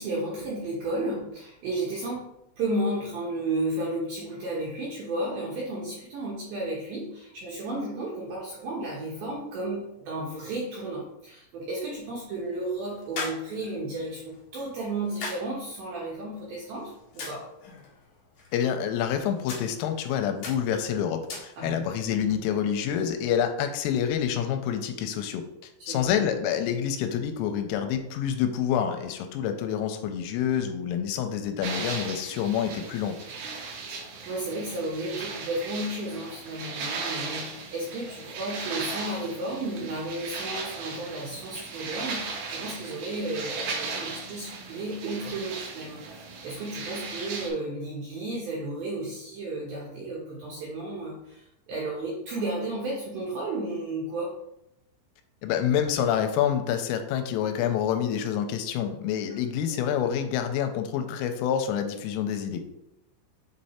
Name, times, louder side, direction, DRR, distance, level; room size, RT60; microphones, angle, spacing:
voice 1, 0.0-2.3 2.6-17.4 21.6-21.9 25.8-26.0 34.3-46.0 46.4-54.3, right 2 dB, 85° right, -5 dB, 2.0 m, -33 dB
sound 1, 11.9-21.9, left 3 dB, 70° left, 1.8 m, -43 dB
voice 2, 18.5-25.4 25.9-33.1 55.4-62.7, left 9 dB, 85° left, 7 dB, 3.2 m, -27 dB
sound 2, 31.6-47.5, right 4 dB, 70° right, 2.5 m, -37 dB
7.4 x 3.2 x 4.2 m, 0.86 s
omnidirectional pair, 5.8 m